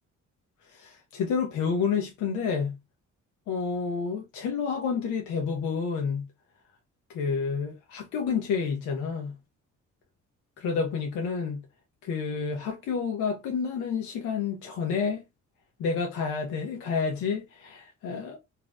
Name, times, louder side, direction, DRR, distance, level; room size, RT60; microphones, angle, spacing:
voice 1, 0.7-2.8 3.5-6.3 7.1-9.3 10.6-11.6 12.0-15.2 15.8-18.4, left 5 dB, 85° left, 0.7 m, -29 dB
2.7 x 2.0 x 3.4 m
cardioid pair, 90°, 30 cm